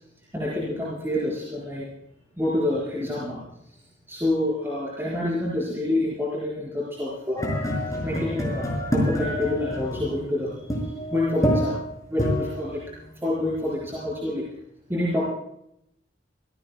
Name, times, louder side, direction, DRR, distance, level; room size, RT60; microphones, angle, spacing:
voice 1, 0.3-1.9 2.4-3.4 4.1-7.4 8.0-11.8 12.1-12.8 13.2-14.5 14.9-15.2, left 1 dB, 15° right, -6 dB, 4.9 m, -27 dB
sound 1, 7.4-13.7, equal, 20° left, 5.5 m, -27 dB
26.0 x 18.0 x 2.2 m, 0.76 s
head